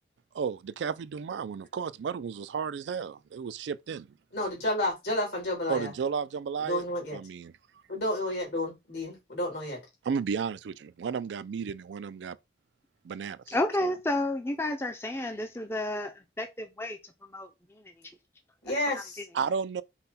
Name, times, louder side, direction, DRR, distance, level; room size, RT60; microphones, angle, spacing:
voice 1, 0.3-1.8 2.4-4.1 5.7-6.8 7.1-7.5 10.0-12.4 13.0-13.5 19.3-19.8, right 6 dB, 90° right, 0.4 m, -33 dB
voice 2, 4.3-5.9 6.6-7.2 7.9-9.8 18.6-19.2, left 1 dB, 80° left, 3.0 m, -31 dB
voice 3, 13.5-17.0 17.3-17.8, left 1 dB, 15° left, 0.4 m, -31 dB
5.6 x 2.2 x 4.1 m
head